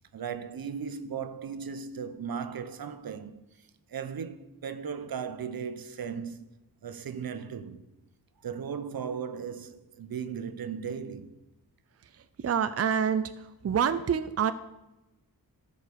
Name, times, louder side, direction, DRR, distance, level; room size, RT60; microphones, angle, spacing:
voice 1, 0.0-6.5 6.8-7.8 8.4-11.4, right 7 dB, 75° right, 0.8 m, -37 dB
voice 2, 12.1-14.5, right 7 dB, 40° right, 0.5 m, -27 dB
13.5 x 5.2 x 6.7 m
wide cardioid pair, 80°, 37 cm